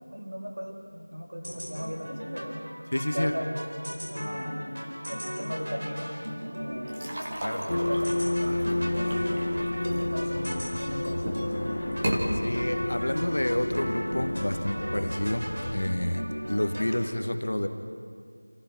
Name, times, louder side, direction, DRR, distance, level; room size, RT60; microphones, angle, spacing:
voice 1, 0.1-2.7 3.1-3.6 4.1-4.6 5.1-6.1 6.4-7.1 7.7-8.1 8.4-9.5 9.9-11.5, equal, 55° right, 0 dB, 4.0 m, -37 dB
sound 1, 1.4-17.1, equal, 40° right, 4.3 m, -37 dB
voice 2, 2.9-3.3 7.4-7.6 12.4-17.7, left 1 dB, 40° left, 6 dB, 1.3 m, -29 dB
Pouring Coffee, 6.9-10.7 11.2-11.5 11.9-12.2, right 1 dB, 10° right, 1.1 m, -34 dB
sound 2, 7.7-15.8, left 1 dB, 20° left, 1.2 m, -30 dB
28.5 x 15.5 x 5.9 m, 2.1 s
figure-of-eight pair, 180°, 0 cm